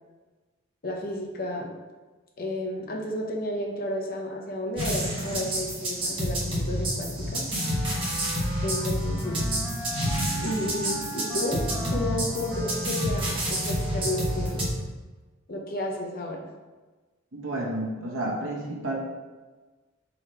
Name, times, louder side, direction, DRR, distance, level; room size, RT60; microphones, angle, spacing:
voice 1, 0.8-1.8 2.4-7.5 8.6-9.4 10.4-14.6 15.5-16.5, left 1 dB, 45° left, 0 dB, 0.7 m, -32 dB
sound 1, 4.8-14.7, equal, 25° right, 1.1 m, -29 dB
Wind instrument woodwind instrument, 7.5-15.0, right 1 dB, 10° right, 0.5 m, -38 dB
voice 2, 17.3-19.0, right 1 dB, 80° right, -2 dB, 1.0 m, -31 dB
3.9 x 3.1 x 4.4 m, 1.3 s
head